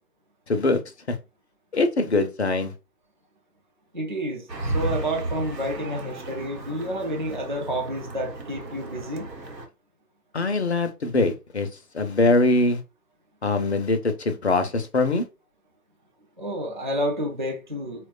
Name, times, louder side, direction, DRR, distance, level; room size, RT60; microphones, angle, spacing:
voice 1, 0.5-0.8 1.1-1.2 1.7-2.7 10.3-11.7 11.9-12.8 13.4-15.2, left 2 dB, 45° left, 0.5 m, -22 dB
voice 2, 3.9-9.3 16.4-18.1, equal, 30° right, 0.5 m, -30 dB
sound 1, 4.5-9.7, right 2 dB, 85° right, 1.1 m, -34 dB
4.3 x 2.2 x 2.3 m
figure-of-eight pair, 145°, 48 cm